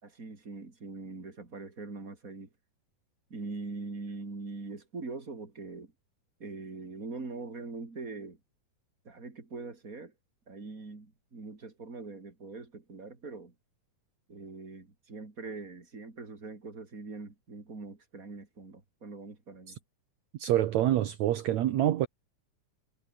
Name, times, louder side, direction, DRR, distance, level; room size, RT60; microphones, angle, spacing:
voice 1, 0.0-2.5 3.3-5.9 6.4-8.4 9.0-10.1 10.5-13.5 14.3-19.8, right 3 dB, 25° right, 4.1 m, -42 dB
voice 2, 20.4-22.1, right 12 dB, 70° right, 2.3 m, -26 dB
omnidirectional pair, 3.6 m